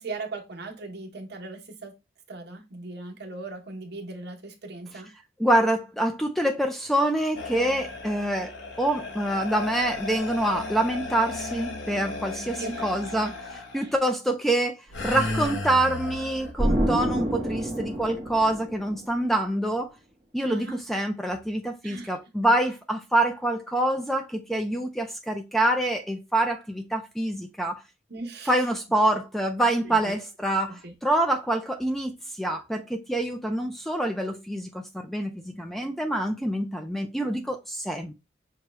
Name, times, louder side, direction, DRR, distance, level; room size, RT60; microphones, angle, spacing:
voice 1, 0.0-1.9 2.3-5.1 12.5-13.3 13.8-13.9 20.5-20.8 21.8-22.1 28.1-28.5 29.8-30.2 30.7-30.9, right 3 dB, 60° right, 1.0 m, -39 dB
voice 2, 5.4-19.9 20.3-27.8 28.5-38.1, right 1 dB, ahead, 0.4 m, -26 dB
sound 1, 7.3-13.8 14.9-16.5, left 3 dB, 80° left, 0.9 m, -34 dB
Explosion, 16.6-19.3, right 1 dB, 20° right, 1.1 m, -27 dB
5.9 x 2.3 x 3.0 m
head